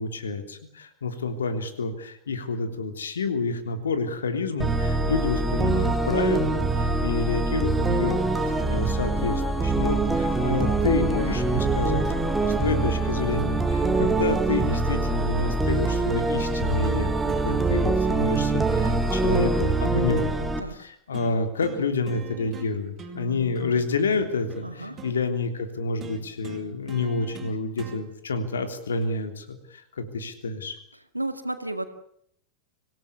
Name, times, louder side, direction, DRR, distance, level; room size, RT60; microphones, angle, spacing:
voice 1, 0.0-20.3 20.7-30.8, left 3 dB, 70° left, 8 dB, 3.3 m, -29 dB
sound 1, 4.6-20.6, right 2 dB, 10° right, 2.3 m, -24 dB
sound 2, 10.1-10.7 11.6-11.8 12.0-12.2 12.5-15.6 16.4-17.0 17.3-18.1 18.5-20.3 21.1-21.3 21.6-21.8 22.1-22.7 23.0-25.2 26.0-28.0 29.0-29.1, right 6 dB, 25° right, 4.7 m, -42 dB
voice 2, 24.6-25.0 31.1-31.9, right 2 dB, 85° right, 9 dB, 2.1 m, -32 dB
26.0 x 17.0 x 8.5 m, 0.66 s
figure-of-eight pair, 90°, 0 cm